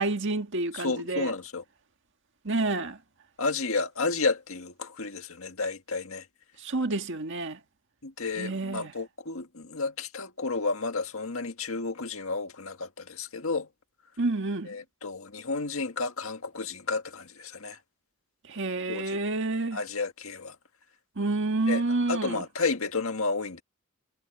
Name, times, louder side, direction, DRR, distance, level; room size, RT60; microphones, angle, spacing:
voice 1, 0.0-1.3 2.4-3.0 6.6-7.6 8.4-8.9 14.2-14.8 18.5-19.8 21.2-22.4, right 2 dB, 60° right, 1.8 m, -29 dB
voice 2, 0.7-1.6 3.4-6.2 8.0-13.7 14.7-17.8 18.9-19.2 19.7-20.6 21.7-21.8 22.1-23.6, left 3 dB, 75° left, 2.0 m, -31 dB
head